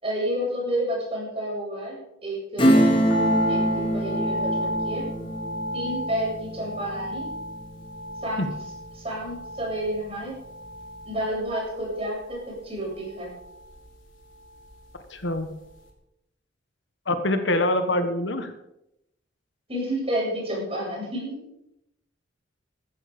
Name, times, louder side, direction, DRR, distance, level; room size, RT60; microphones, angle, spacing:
voice 1, 0.0-3.0 3.5-5.1 5.7-7.3 8.2-8.5 8.9-10.3 11.0-13.4 19.7-21.4, right 1 dB, 30° right, -3 dB, 7.6 m, -30 dB
Acoustic guitar / Strum, 2.6-8.8 9.2-9.3, equal, 30° left, 2.6 m, -25 dB
sound 1, 3.1-15.4 15.6-15.7, equal, 80° left, 3.6 m, -33 dB
voice 2, 15.1-15.5 17.1-18.5, left 1 dB, 65° left, 9 dB, 1.5 m, -24 dB
14.5 x 14.0 x 5.3 m, 0.83 s
head